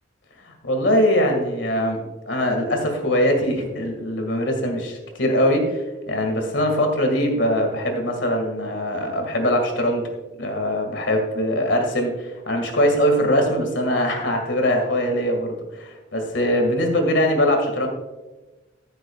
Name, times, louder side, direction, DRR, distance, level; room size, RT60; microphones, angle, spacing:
voice 1, 0.4-10.1 10.4-17.9, equal, 70° left, 3 dB, 2.0 m, -22 dB
15.0 x 7.9 x 2.4 m, 1.1 s
head